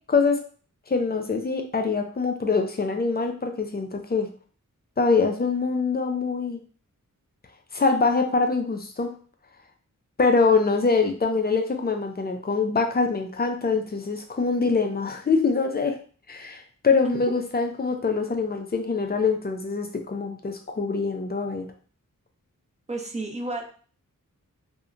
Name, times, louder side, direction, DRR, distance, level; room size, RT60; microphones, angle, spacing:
voice 1, 0.1-0.4 0.9-4.3 5.0-6.6 7.7-9.1 10.2-16.0 16.3-21.7, left 4 dB, 30° left, 4 dB, 0.4 m, -24 dB
voice 2, 22.9-23.6, right 2 dB, 20° right, 3 dB, 0.5 m, -31 dB
2.7 x 2.1 x 2.5 m, 0.42 s
wide cardioid pair, 80°, 33 cm